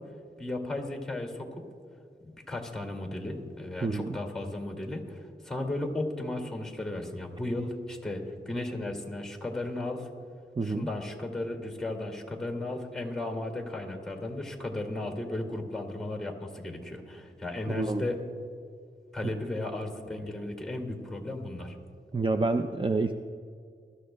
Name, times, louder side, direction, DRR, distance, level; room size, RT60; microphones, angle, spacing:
voice 1, 0.4-1.5 2.2-10.1 10.6-18.2 19.1-21.7, left 2 dB, 5° left, 2 dB, 2.3 m, -35 dB
voice 2, 3.8-4.2 10.6-10.9 17.7-18.0 19.2-19.3 22.1-23.1, right 3 dB, 25° right, 6 dB, 0.5 m, -28 dB
23.0 x 13.0 x 2.3 m, 2.3 s
wide cardioid pair, 65°, 19 cm